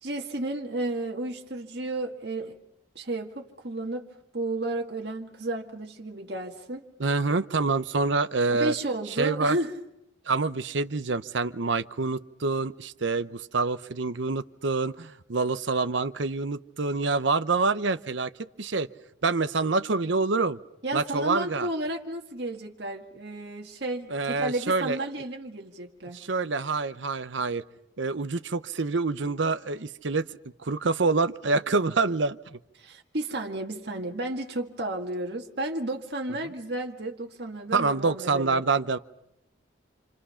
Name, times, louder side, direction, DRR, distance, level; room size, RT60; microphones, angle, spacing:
voice 1, 0.0-2.5 3.0-4.0 4.3-6.8 8.5-9.7 20.8-26.3 32.8-38.6, right 2 dB, 55° right, 1 dB, 1.9 m, -32 dB
voice 2, 7.0-8.7 9.2-9.6 10.3-18.9 19.2-20.6 20.9-21.7 24.1-25.0 26.1-27.6 28.0-32.4 37.7-39.0, right 3 dB, 75° right, 12 dB, 0.8 m, -26 dB
28.5 x 26.5 x 5.7 m, 0.80 s
head